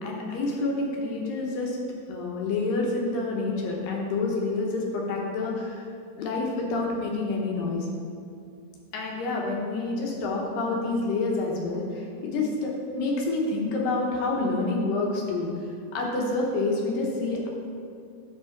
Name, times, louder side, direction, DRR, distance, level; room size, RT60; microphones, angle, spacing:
voice 1, 0.0-1.8 2.1-5.9 6.2-7.9 8.9-15.5 15.9-17.5, left 3 dB, 70° left, -1 dB, 2.2 m, -28 dB
6.5 x 5.2 x 5.8 m, 2.3 s
omnidirectional pair, 5.0 m